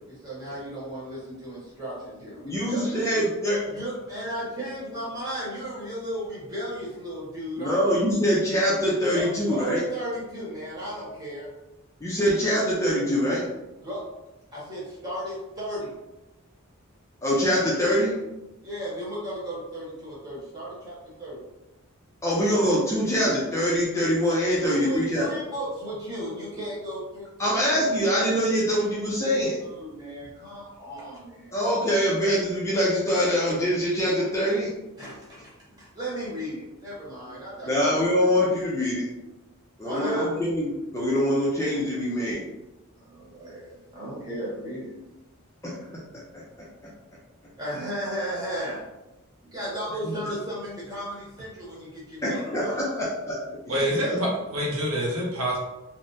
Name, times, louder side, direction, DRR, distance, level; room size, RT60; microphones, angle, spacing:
voice 1, 0.0-3.3 3.7-7.8 9.1-11.5 13.8-14.0 14.5-15.9 18.6-21.4 24.6-27.5 27.8-28.2 29.6-31.6 35.0-35.5 35.8-38.4 39.8-40.3 42.9-44.9 47.6-48.8 49.4-52.8 53.7-54.2, equal, 15° right, -8 dB, 1.1 m, -35 dB
voice 2, 2.4-3.6 7.6-9.8 12.0-13.5 17.2-18.2 22.2-25.3 27.4-29.6 31.5-34.7 37.6-39.1 39.8-42.5 45.6-46.4 50.0-50.1 52.2-53.6 53.9-54.2, equal, 15° left, -5 dB, 0.5 m, -24 dB
voice 3, 53.7-55.6, equal, 70° right, -3 dB, 0.8 m, -26 dB
3.5 x 2.1 x 2.6 m, 0.99 s
head